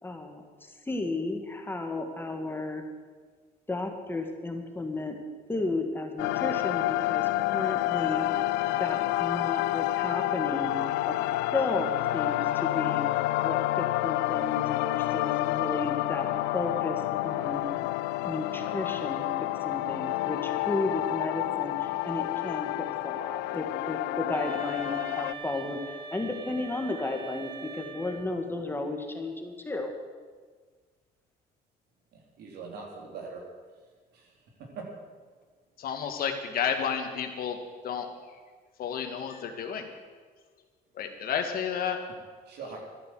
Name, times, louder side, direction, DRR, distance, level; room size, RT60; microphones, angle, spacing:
voice 1, 0.0-2.8 3.7-5.2 5.5-8.3 8.7-10.7 11.0-13.0 13.4-16.3 16.5-17.7 18.2-19.2 19.6-22.7 23.0-29.9, left 2 dB, 15° left, 4 dB, 1.9 m, -33 dB
sound 1, 6.2-25.3, left 16 dB, 90° left, 0.4 m, -29 dB
sound 2, 24.3-28.5, right 4 dB, 25° right, 1.9 m, -42 dB
voice 2, 32.1-33.4 34.1-34.3 34.6-34.9 42.5-42.8, right 4 dB, 75° right, 0 dB, 3.7 m, -42 dB
voice 3, 35.8-37.6 37.8-38.1 38.8-39.9 41.0-42.0, left 7 dB, 60° left, 5 dB, 1.9 m, -31 dB
12.5 x 10.5 x 7.7 m, 1.5 s
cardioid pair, 110°, 17 cm